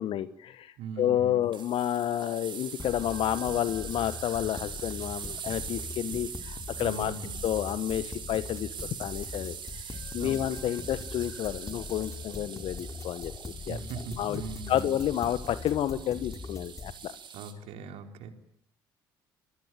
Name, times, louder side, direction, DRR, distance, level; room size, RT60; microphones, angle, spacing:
voice 1, 0.0-7.1 7.4-13.3 13.7-13.8 14.2-14.4 14.7-17.1, left 11 dB, 55° left, 14 dB, 1.3 m, -30 dB
voice 2, 0.8-1.4 6.0-6.2 6.8-7.3 10.2-10.3 13.7-14.9 17.3-18.3, right 5 dB, 65° right, 6 dB, 3.9 m, -40 dB
sound 1, 1.5-17.5, right 7 dB, 45° right, 5.3 m, -42 dB
sound 2, 2.8-16.9, left 4 dB, 30° left, 3.3 m, -42 dB
29.0 x 22.5 x 9.2 m, 0.73 s
figure-of-eight pair, 50°, 11 cm